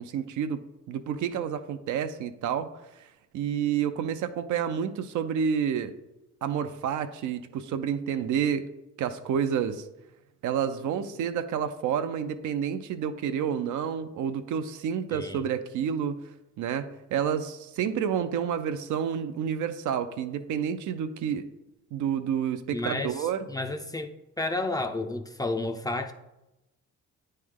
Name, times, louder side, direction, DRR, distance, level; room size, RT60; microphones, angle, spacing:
voice 1, 0.0-2.7 3.3-5.9 6.4-8.7 9.0-9.9 10.4-16.3 16.6-21.5 21.9-23.4, right 8 dB, 75° right, 9 dB, 0.5 m, -29 dB
voice 2, 15.1-15.4 22.7-24.1 24.4-26.1, left 2 dB, 10° left, 6 dB, 0.4 m, -31 dB
9.3 x 3.2 x 3.6 m, 0.96 s
cardioid pair, 95°, 31 cm